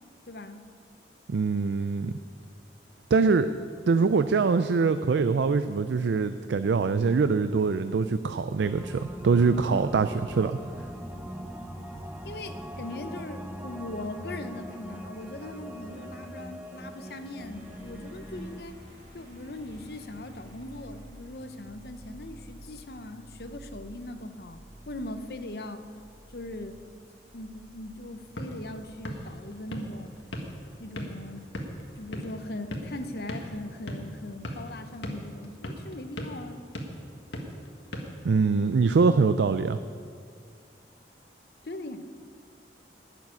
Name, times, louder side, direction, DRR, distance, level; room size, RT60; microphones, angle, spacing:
voice 1, 0.3-0.7 12.2-18.8 19.1-25.9 26.3-26.8 27.3-30.2 30.8-31.5 32.0-36.6 41.6-42.1, left 1 dB, 60° left, 9 dB, 0.8 m, -40 dB
voice 2, 1.3-2.2 3.1-3.5 3.9-10.6 38.2-39.8, right 4 dB, 85° right, 10 dB, 0.4 m, -23 dB
sound 1, 8.6-18.6, equal, 10° right, 0.6 m, -41 dB
sound 2, 17.4-33.5 34.0-34.8, right 1 dB, 40° right, 2.3 m, -52 dB
sound 3, 28.0-38.8, equal, 85° left, 1.6 m, -40 dB
11.5 x 7.3 x 9.6 m, 2.2 s
head